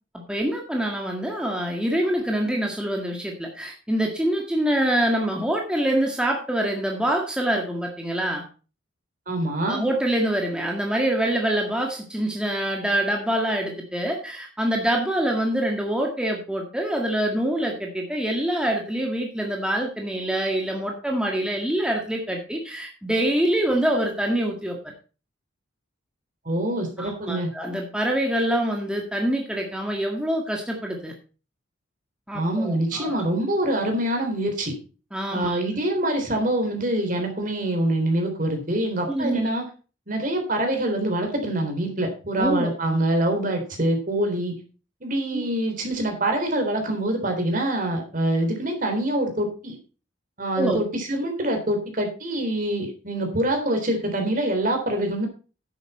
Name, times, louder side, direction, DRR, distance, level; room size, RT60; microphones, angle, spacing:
voice 1, 0.3-8.4 9.6-24.8 27.0-31.1 32.3-33.1 35.1-35.6 39.1-39.4 42.4-42.7 45.3-45.5 50.6-50.8, right 1 dB, 5° right, 0 dB, 1.8 m, -25 dB
voice 2, 9.3-9.9 26.5-27.5 32.3-34.7 35.3-39.6 40.1-44.5 45.0-49.8 50.4-55.3, right 1 dB, 45° right, 4 dB, 3.6 m, -25 dB
10.5 x 8.8 x 4.2 m, 0.35 s
head